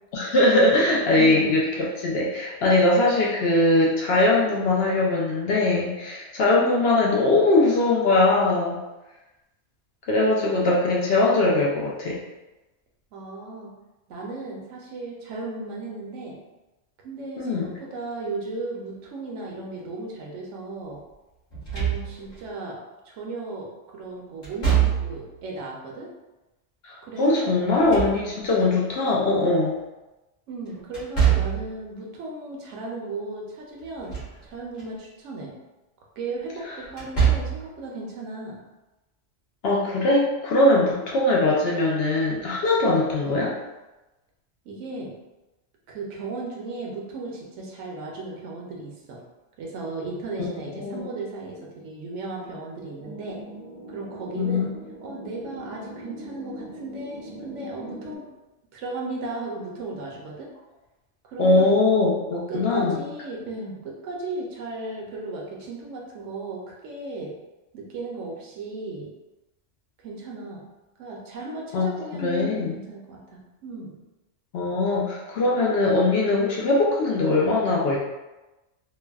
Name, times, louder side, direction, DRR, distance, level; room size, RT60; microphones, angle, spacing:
voice 1, 0.1-8.8 10.1-12.2 17.4-17.7 26.8-29.8 36.7-36.8 39.6-43.5 50.5-51.1 54.3-54.7 61.4-63.0 71.7-71.9 72.2-72.8 74.5-78.0, left 2 dB, 65° left, -4 dB, 0.7 m, -21 dB
voice 2, 1.1-1.5 13.1-13.7 14.1-16.4 17.0-21.0 21.7-22.8 23.0-26.1 27.0-27.6 30.5-35.5 36.2-38.6 44.7-45.1 45.9-49.2 49.6-53.4 53.9-54.7 55.0-58.3 58.7-60.5 61.2-61.7 62.5-67.3 67.7-69.1 70.0-70.6 71.0-73.9, right 3 dB, 75° right, -2 dB, 1.0 m, -35 dB
Slam / Thump thud, 21.5-22.4 24.4-25.3 27.6-28.6 30.9-31.7 33.8-34.4 34.8-34.9 36.9-37.7, right 8 dB, 45° left, 1.2 m, -24 dB
sound 1, 53.0-58.2, equal, 15° left, 0.7 m, -41 dB
3.2 x 2.1 x 2.3 m, 1.0 s
omnidirectional pair, 1.3 m